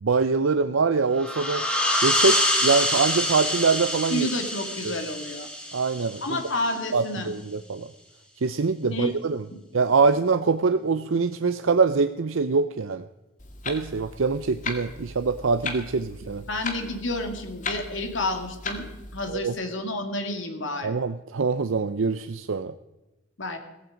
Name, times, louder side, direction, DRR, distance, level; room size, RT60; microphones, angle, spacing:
voice 1, 0.0-1.6 2.0-4.3 4.8-5.0 5.7-6.4 6.9-7.9 8.4-9.4 9.7-13.0 13.7-16.4 19.3-19.5 20.8-22.7, right 4 dB, 85° right, 11 dB, 0.6 m, -24 dB
sound 1, 1.1-6.5, left 1 dB, 5° left, 2.2 m, -26 dB
voice 2, 4.1-5.5 6.2-7.3 8.9-9.1 16.5-18.9 19.1-20.9 23.4-23.6, left 2 dB, 75° left, 6 dB, 2.5 m, -30 dB
Clock, 13.4-19.3, left 3 dB, 40° left, 2.0 m, -37 dB
17.0 x 15.0 x 5.1 m, 1.0 s
head